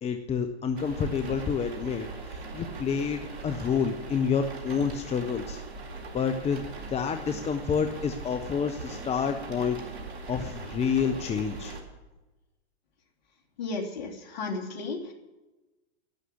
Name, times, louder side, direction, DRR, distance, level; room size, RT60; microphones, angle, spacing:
voice 1, 0.0-5.6 6.1-10.0 10.3-11.7, left 6 dB, 20° left, 7 dB, 0.9 m, -29 dB
sound 1, 0.8-11.8, right 3 dB, 80° right, 3.8 m, -40 dB
voice 2, 13.6-15.1, left 3 dB, 65° left, -1 dB, 3.3 m, -34 dB
12.0 x 11.0 x 8.6 m, 1.1 s
hypercardioid pair, 115°, 32 cm